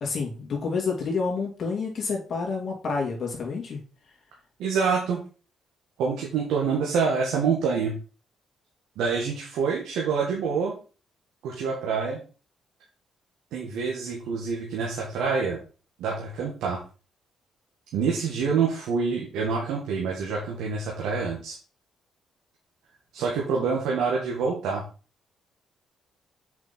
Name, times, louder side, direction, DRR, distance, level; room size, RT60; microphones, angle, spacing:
voice 1, 0.0-3.8, left 4 dB, 50° left, -1 dB, 2.5 m, -29 dB
voice 2, 4.6-5.2 6.0-7.9 9.0-10.8 11.4-12.2 13.5-15.6 16.0-16.8 17.9-21.5 23.1-24.8, right 5 dB, 90° right, -2 dB, 2.0 m, -26 dB
7.1 x 5.3 x 4.3 m, 0.35 s
cardioid pair, 90°, 0 cm